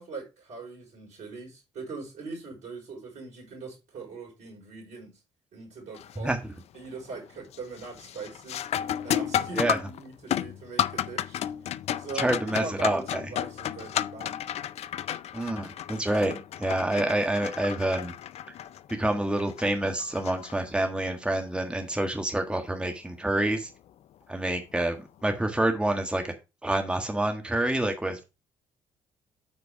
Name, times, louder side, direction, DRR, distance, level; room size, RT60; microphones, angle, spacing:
voice 1, 0.0-5.2 5.5-6.3 6.7-8.7 9.0-14.4, right 4 dB, 70° right, 5.1 m, -41 dB
sound 1, 5.9-6.3 6.7-7.2 7.5-21.0 23.5-23.6 24.5-24.7, left 10 dB, 55° left, 0.5 m, -33 dB
voice 2, 6.2-6.5 9.5-9.8 12.1-13.0 15.3-18.1 19.0-23.7 24.3-26.3 26.6-28.2, right 1 dB, 10° right, 1.6 m, -27 dB
8.8 x 4.6 x 4.8 m
hypercardioid pair, 50°, 13 cm